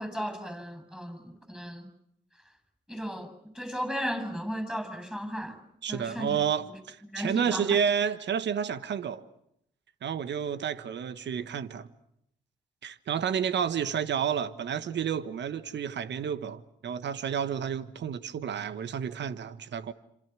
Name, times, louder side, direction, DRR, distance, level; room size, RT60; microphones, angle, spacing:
voice 1, 0.0-1.9 2.9-5.6 5.9-6.4 7.0-7.8, equal, 5° right, 7.8 m, -35 dB
voice 2, 5.8-9.2 10.0-11.9 12.8-19.9, right 8 dB, 60° right, 1.4 m, -30 dB
27.5 x 27.0 x 6.2 m
supercardioid pair, 50°, 20 cm